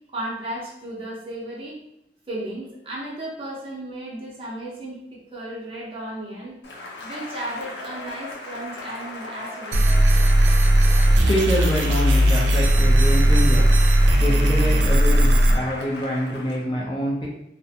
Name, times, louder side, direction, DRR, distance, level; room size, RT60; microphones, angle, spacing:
voice 1, 0.1-1.8 2.3-6.6 7.0-9.9, right 1 dB, 30° right, -4 dB, 0.6 m, -34 dB
Cheering / Applause, 6.6-16.7, left 2 dB, 80° left, 0.5 m, -37 dB
sound 1, 9.7-15.5, right 1 dB, 85° right, 0.4 m, -17 dB
voice 2, 10.7-13.7 14.2-17.3, equal, 30° left, -3 dB, 0.4 m, -26 dB
2.4 x 2.1 x 2.7 m, 0.81 s
head